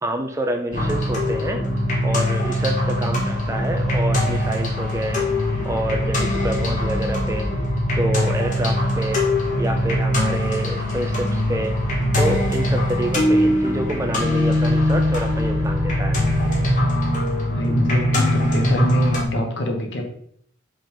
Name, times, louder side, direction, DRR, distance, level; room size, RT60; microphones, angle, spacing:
voice 1, 0.0-1.6 2.0-5.3 5.6-7.5 8.0-9.2 9.6-11.8 12.2-16.2, right 1 dB, 15° right, 4 dB, 0.5 m, -27 dB
sound 1, 0.7-19.2, left 1 dB, 40° left, 1.5 m, -21 dB
voice 2, 17.5-20.1, equal, 70° left, 2 dB, 1.1 m, -24 dB
5.4 x 3.7 x 5.0 m, 0.65 s
head